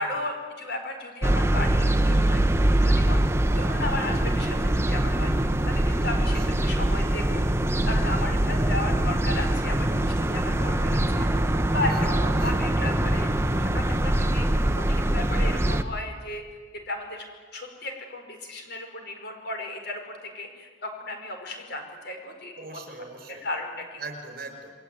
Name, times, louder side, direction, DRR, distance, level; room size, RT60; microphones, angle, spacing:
voice 1, 0.0-2.4 2.8-3.2 3.5-5.3 5.7-7.4 7.8-14.5 14.7-16.4 16.9-17.3 17.5-22.8 23.3-24.0, left 2 dB, 55° left, 4 dB, 5.1 m, -35 dB
sound 1, 1.2-15.8, right 1 dB, 15° right, 1.0 m, -23 dB
voice 2, 6.2-6.6 8.5-8.7 11.9-12.5 22.5-23.5 24.0-24.7, right 2 dB, 50° right, 5 dB, 5.9 m, -41 dB
29.0 x 22.0 x 9.4 m, 1.5 s
head